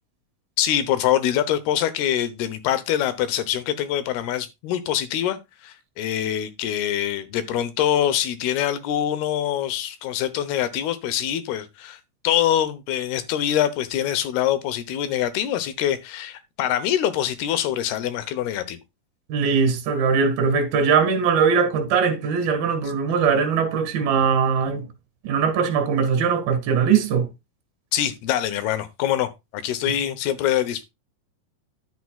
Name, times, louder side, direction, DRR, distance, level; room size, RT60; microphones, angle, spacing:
voice 1, 0.6-12.0 12.2-18.8 27.9-30.8, left 11 dB, 90° left, 3.0 m, -24 dB
voice 2, 19.3-24.9 25.2-27.3, right 6 dB, 70° right, 3.6 m, -21 dB
11.0 x 8.4 x 2.4 m
omnidirectional pair, 4.4 m